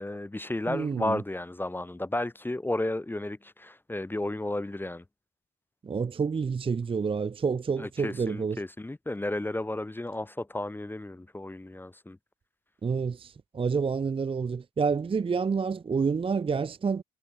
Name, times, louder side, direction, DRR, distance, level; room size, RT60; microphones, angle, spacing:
voice 1, 0.0-5.0 7.8-12.2, left 1 dB, 10° left, 0.7 m, -33 dB
voice 2, 0.7-1.2 5.8-8.6 12.8-17.0, right 5 dB, 25° right, 0.6 m, -28 dB
cardioid pair, 90°, 20 cm